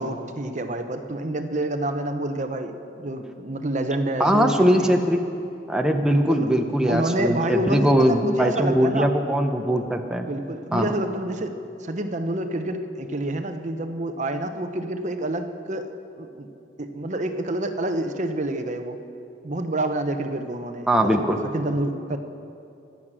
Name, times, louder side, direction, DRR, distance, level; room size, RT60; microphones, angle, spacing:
voice 1, 0.0-4.9 6.0-6.5 6.9-9.1 10.2-11.6 11.8-15.9 16.2-16.5 16.8-19.0 19.4-21.1 21.4-22.2, right 1 dB, 45° right, 7 dB, 0.9 m, -28 dB
voice 2, 4.2-5.2 5.7-10.3 10.7-10.9 20.9-21.4, equal, 5° right, 3 dB, 0.8 m, -21 dB
24.5 x 9.4 x 6.2 m, 2.6 s
head